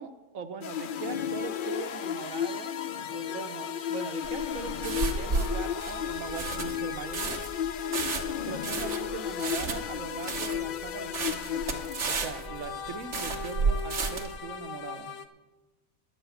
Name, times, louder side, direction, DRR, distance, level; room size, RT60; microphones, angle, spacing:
voice 1, 0.0-2.7 3.1-7.3 8.4-15.1, right 6 dB, 75° right, 8 dB, 1.3 m, -40 dB
sound 1, 0.6-12.5, left 9 dB, 65° left, 0.5 m, -34 dB
sound 2, 1.1-15.3, left 8 dB, 90° left, 1.2 m, -41 dB
sound 3, 4.2-14.4, right 4 dB, 60° right, 1.6 m, -32 dB
11.0 x 6.8 x 9.2 m, 1.2 s
omnidirectional pair, 1.4 m